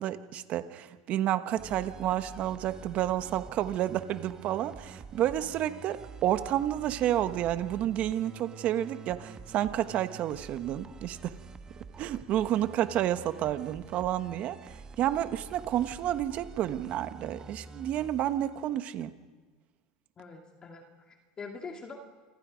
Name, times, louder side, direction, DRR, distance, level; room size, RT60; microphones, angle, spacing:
voice 1, 0.0-11.3 12.0-14.6 15.0-19.1, right 12 dB, 45° right, 10 dB, 1.3 m, -30 dB
sound 1, 1.6-19.0, right 5 dB, 20° right, 1.2 m, -47 dB
voice 2, 20.2-22.0, left 4 dB, 25° left, 3 dB, 2.1 m, -44 dB
28.0 x 20.5 x 5.2 m, 1.4 s
supercardioid pair, 125°, 3 cm